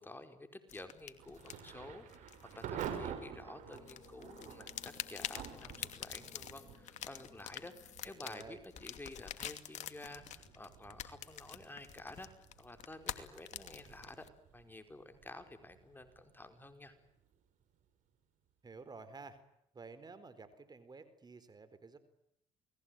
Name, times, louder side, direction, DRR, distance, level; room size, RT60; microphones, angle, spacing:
voice 1, 0.0-14.3 14.5-16.9, left 2 dB, 15° left, 8 dB, 4.9 m, -51 dB
sound 1, 0.7-3.4 3.7-14.3, left 10 dB, 60° left, 2.7 m, -47 dB
Thunder / Rain, 1.2-17.9, right 8 dB, 65° right, 5.7 m, -50 dB
sound 2, 2.6-8.2, left 5 dB, 45° left, 5.3 m, -62 dB
voice 2, 8.2-8.6 18.6-19.4 19.7-22.0, right 4 dB, 30° right, 12 dB, 4.4 m, -52 dB
29.0 x 21.0 x 9.3 m, 0.80 s
supercardioid pair, 70°, 14 cm